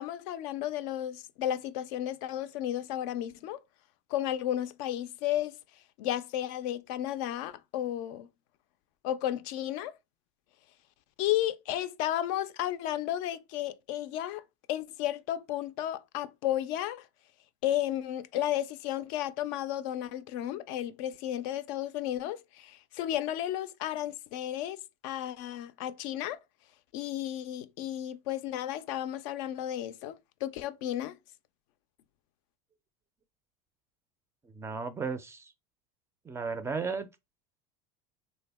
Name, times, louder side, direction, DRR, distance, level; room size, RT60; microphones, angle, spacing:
voice 1, 0.0-3.6 4.1-5.6 6.0-8.3 9.0-9.9 11.2-17.1 17.6-26.4 26.9-31.2, left 12 dB, 65° left, 0.4 m, -33 dB
voice 2, 34.4-35.5 36.2-37.1, right 5 dB, 15° right, 0.4 m, -35 dB
3.4 x 2.1 x 3.4 m
supercardioid pair, 120°, 18 cm